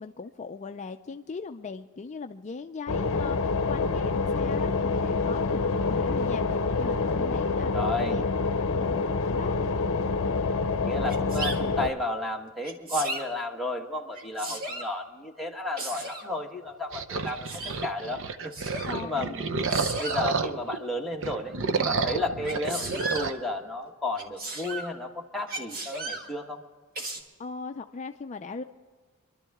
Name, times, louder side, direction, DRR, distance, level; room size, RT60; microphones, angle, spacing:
voice 1, 0.0-8.2 8.5-9.6 14.5-14.6 18.8-19.4 27.4-28.6, left 4 dB, 30° left, 6 dB, 0.4 m, -39 dB
sound 1, 2.9-11.9, left 4 dB, 60° left, 0.7 m, -27 dB
voice 2, 7.7-8.2 10.8-18.5 19.0-19.5 20.0-26.6, left 2 dB, ahead, -1 dB, 1.2 m, -33 dB
Sneeze, 11.1-11.6 12.6-13.3 14.1-14.9 15.8-16.3 17.2-17.8 18.5-19.0 19.7-20.3 22.4-23.3 24.2-24.9 25.5-26.3 27.0-27.2, right 2 dB, 40° right, 1.8 m, -35 dB
sound 2, 16.9-20.8 21.1-23.3, right 4 dB, 60° right, 0.8 m, -30 dB
25.0 x 12.5 x 3.5 m, 1.5 s
head